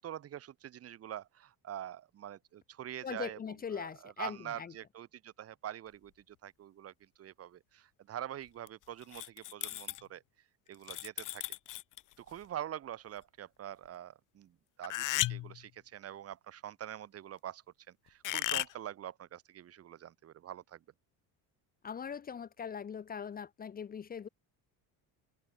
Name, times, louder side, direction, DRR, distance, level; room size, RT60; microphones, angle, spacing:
voice 1, 0.0-3.4 3.7-10.2 10.7-11.4 12.2-20.8, right 11 dB, 40° right, 3.4 m, -45 dB
voice 2, 3.0-4.7 21.8-24.3, left 7 dB, 25° left, 1.2 m, -41 dB
sound 1, 8.7-8.8 9.0-10.0 10.7-12.1 14.8-15.6 18.2-18.7, left 16 dB, 55° left, 3.8 m, -35 dB
cardioid pair, 165°, 37 cm